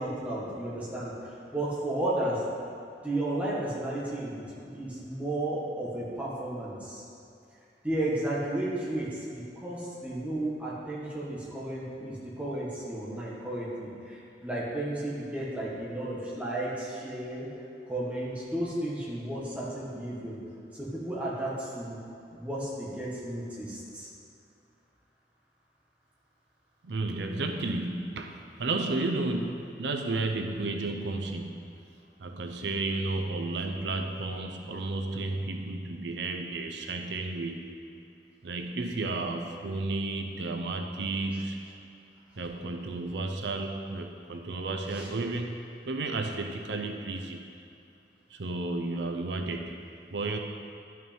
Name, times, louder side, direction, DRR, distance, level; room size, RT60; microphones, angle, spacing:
voice 1, 0.0-2.4 3.0-7.0 7.8-17.5 17.9-20.4 20.7-22.0 22.3-24.1 44.9-45.1, right 1 dB, 10° right, -7 dB, 1.6 m, -33 dB
voice 2, 26.8-31.7 32.2-37.7 38.4-41.6 42.4-45.6 45.8-47.5 48.3-49.8 50.1-50.4, right 2 dB, 85° right, 4 dB, 0.6 m, -32 dB
11.0 x 5.9 x 4.4 m, 2.6 s
head